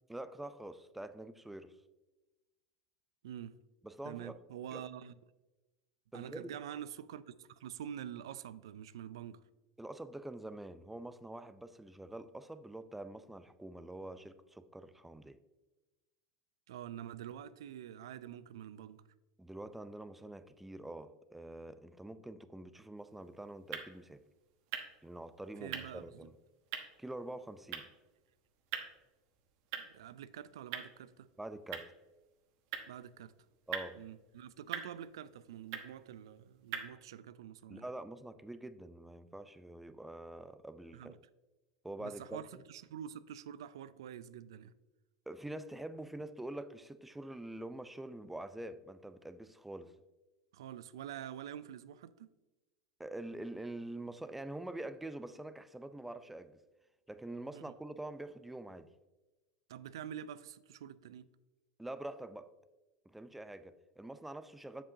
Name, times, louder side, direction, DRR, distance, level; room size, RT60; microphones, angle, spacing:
voice 1, 0.1-1.7 3.8-4.4 4.7-4.8 6.1-6.5 9.8-15.4 19.4-24.2 25.0-26.3 27.0-27.9 31.4-31.9 33.7-34.0 37.7-41.2 41.8-42.4 45.3-49.9 53.0-56.6 57.1-58.9 61.8-62.5 63.1-64.8, right 1 dB, 5° right, 0.4 m, -45 dB
voice 2, 3.2-3.6 4.0-5.1 6.1-9.4 16.7-19.0 25.6-26.3 29.8-31.3 32.9-33.3 33.9-37.9 40.9-41.1 42.0-44.7 50.5-52.3 57.5-57.6 59.7-61.3, right 10 dB, 85° right, 0.4 m, -46 dB
sound 1, 23.0-36.9, right 8 dB, 60° right, 1.1 m, -47 dB
7.5 x 7.1 x 2.7 m
hypercardioid pair, 100°, 2 cm